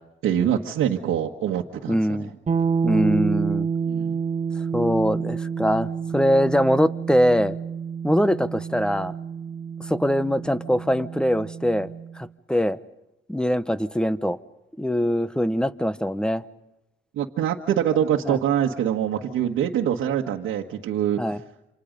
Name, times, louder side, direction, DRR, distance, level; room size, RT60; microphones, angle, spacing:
voice 1, 0.2-2.3 3.9-4.2 17.1-21.2, right 9 dB, 85° right, 1.5 m, -24 dB
voice 2, 1.9-2.3 2.8-3.7 4.7-7.6 8.0-9.1 9.8-11.9 12.2-12.8 13.3-14.4 14.8-16.4 18.2-18.4 21.2-21.4, equal, 5° left, 1.0 m, -22 dB
sound 1, 2.5-12.2, right 6 dB, 35° right, 1.7 m, -29 dB
28.0 x 26.5 x 5.3 m
cardioid pair, 90°, 20 cm